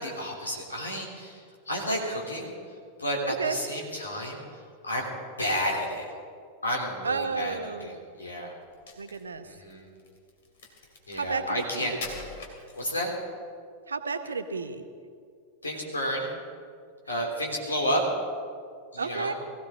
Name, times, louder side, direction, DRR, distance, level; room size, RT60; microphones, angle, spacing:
voice 1, 0.0-1.4 1.7-2.5 3.0-4.4 4.8-5.0 5.4-6.1 6.6-8.5 9.4-9.9 11.1-12.3 12.8-13.1 15.6-16.3 17.1-18.0 18.9-19.3, equal, 80° left, 0 dB, 3.2 m, -31 dB
voice 2, 3.3-3.6 7.0-8.0 9.0-9.5 11.1-12.0 13.9-14.8 17.1-17.3 19.0-19.3, right 5 dB, 75° right, 9 dB, 0.9 m, -32 dB
Crack, 8.7-13.3, left 3 dB, 60° left, 2.6 m, -44 dB
20.5 x 16.0 x 3.7 m, 2.2 s
figure-of-eight pair, 90°, 0 cm